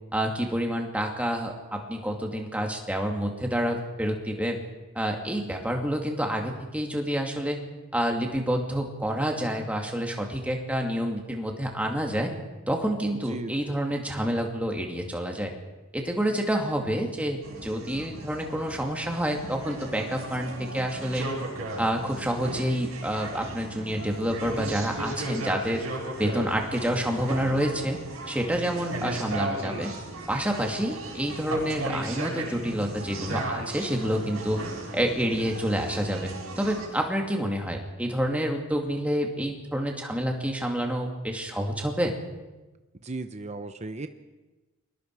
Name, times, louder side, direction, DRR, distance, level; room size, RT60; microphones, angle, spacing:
voice 1, 0.1-4.6 4.9-7.6 7.9-12.3 12.7-15.5 15.9-21.3 21.8-25.8 26.2-28.0 28.3-29.9 30.3-34.6 34.9-36.3 36.6-42.2, equal, 5° right, 2 dB, 2.5 m, -28 dB
sound 1, 17.4-36.9, right 2 dB, 75° right, 6.6 m, -36 dB
voice 2, 43.0-44.1, right 2 dB, 30° right, 8 dB, 0.8 m, -35 dB
29.5 x 22.0 x 4.8 m, 1.2 s
head